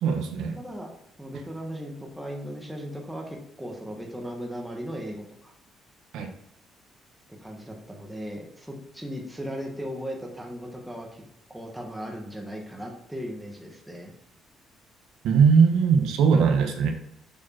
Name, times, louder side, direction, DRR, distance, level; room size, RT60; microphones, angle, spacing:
voice 1, 0.0-0.6 6.1-6.3 15.2-16.9, right 6 dB, 80° right, 4 dB, 1.1 m, -20 dB
voice 2, 0.6-0.9 1.2-5.5 7.4-11.2 11.5-14.1, equal, 5° right, 0 dB, 1.4 m, -37 dB
7.1 x 4.9 x 4.4 m, 0.76 s
cardioid pair, 150°, 0 cm